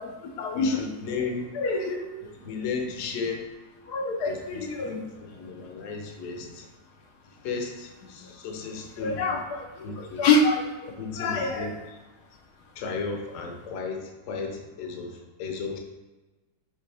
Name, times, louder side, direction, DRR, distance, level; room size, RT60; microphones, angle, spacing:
voice 1, 0.0-0.8 1.5-2.0 3.9-4.9 8.2-8.3 9.0-11.7, left 3 dB, 80° left, 2 dB, 1.3 m, -27 dB
voice 2, 0.5-1.6 2.4-3.5 4.3-6.7 7.4-9.4 9.8-10.2 11.0-11.7 12.7-15.8, left 4 dB, 60° left, 2 dB, 1.1 m, -34 dB
7.7 x 3.7 x 3.4 m, 1.2 s
omnidirectional pair, 1.7 m